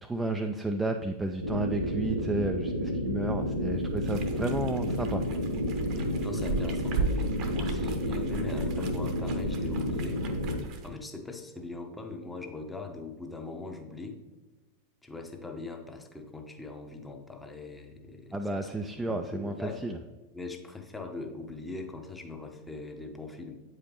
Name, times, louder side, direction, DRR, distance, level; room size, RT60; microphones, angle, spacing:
voice 1, 0.0-5.2 18.3-20.0, right 2 dB, 10° right, 4 dB, 0.3 m, -32 dB
sound 1, 1.4-10.6, equal, 80° right, 0.7 m, -31 dB
sound 2, 4.0-10.9, right 3 dB, 40° right, 0.8 m, -37 dB
voice 2, 5.9-10.2 10.8-14.2 15.0-18.7 19.1-19.8 20.3-23.6, left 3 dB, 10° left, 4 dB, 0.8 m, -41 dB
8.5 x 5.0 x 3.0 m, 1.2 s
figure-of-eight pair, 90°, 0 cm